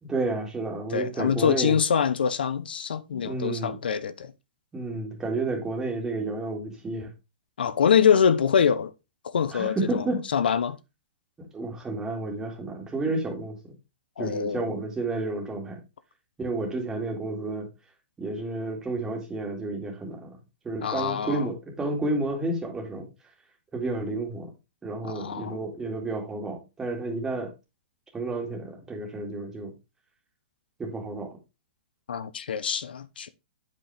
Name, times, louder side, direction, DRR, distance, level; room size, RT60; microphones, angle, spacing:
voice 1, 0.0-1.8 3.1-3.8 4.7-7.1 9.5-10.2 11.4-13.7 14.2-15.8 16.4-17.7 18.2-20.4 20.6-23.1 23.7-24.5 24.8-27.5 28.1-29.7 30.8-31.3, right 2 dB, 10° right, 2.1 m, -31 dB
voice 2, 0.9-4.3 7.6-8.9 9.2-10.0 10.3-10.8 14.2-14.7 20.8-21.5 25.1-25.6 32.1-33.3, left 7 dB, 85° left, 0.8 m, -24 dB
8.7 x 5.4 x 3.4 m
hypercardioid pair, 155°, 5 cm